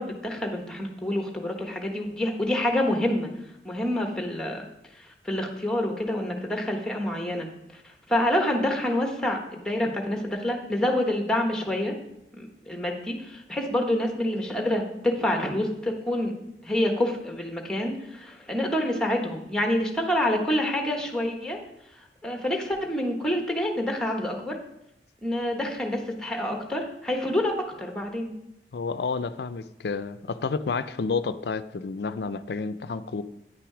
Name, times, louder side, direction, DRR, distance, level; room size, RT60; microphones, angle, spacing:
voice 1, 0.0-3.3 3.6-4.6 5.0-7.8 8.1-11.9 12.3-16.4 16.6-21.6 22.2-24.6 25.2-28.3, left 1 dB, 5° left, 2 dB, 1.1 m, -27 dB
voice 2, 28.7-33.2, left 4 dB, 70° left, 13 dB, 0.5 m, -30 dB
9.7 x 6.0 x 4.9 m, 0.83 s
head